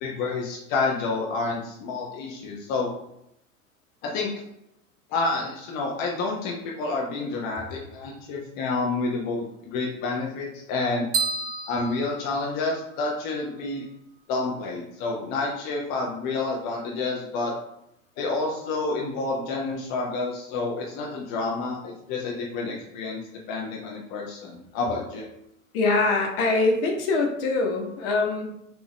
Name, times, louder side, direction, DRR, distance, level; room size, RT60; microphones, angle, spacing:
voice 1, 0.0-2.9 4.0-4.3 5.1-11.1 11.7-13.9 14.3-17.5 18.2-23.2 23.5-25.3, left 3 dB, 25° left, -1 dB, 0.4 m, -29 dB
sound 1, 11.1-13.1, right 4 dB, 20° right, 0.6 m, -30 dB
voice 2, 25.7-28.4, left 3 dB, 45° left, 1 dB, 0.9 m, -23 dB
3.4 x 2.5 x 3.4 m, 0.79 s
figure-of-eight pair, 90°, 42 cm